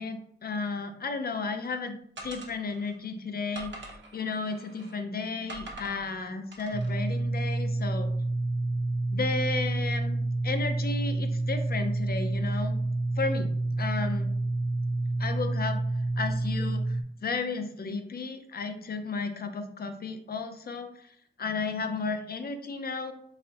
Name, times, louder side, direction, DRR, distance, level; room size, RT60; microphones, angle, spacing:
voice 1, 0.0-2.0 2.2-8.1 9.1-12.8 13.2-14.3 15.2-15.8 16.2-21.1 21.4-23.1, left 4 dB, 55° left, 7 dB, 0.6 m, -33 dB
sound 1, 2.2-3.0 3.5-5.0 5.5-6.1 6.5-6.9, right 2 dB, 90° right, 1.0 m, -44 dB
sound 2, 6.7-17.0, right 2 dB, 30° right, 0.4 m, -29 dB
4.3 x 4.2 x 2.5 m, 0.68 s
wide cardioid pair, 100°, 18 cm